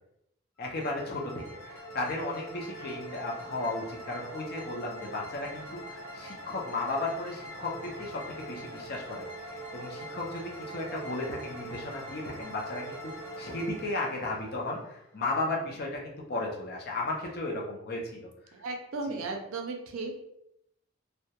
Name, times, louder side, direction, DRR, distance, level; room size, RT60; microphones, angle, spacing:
sound 1, 0.6-15.4, right 1 dB, 85° left, 0.7 m, -43 dB
voice 1, 0.6-13.0 13.4-18.3 19.1-19.2, left 2 dB, 45° left, -1 dB, 0.5 m, -35 dB
voice 2, 18.5-20.2, right 3 dB, 75° right, 3 dB, 0.4 m, -35 dB
2.2 x 2.1 x 2.8 m, 0.80 s
head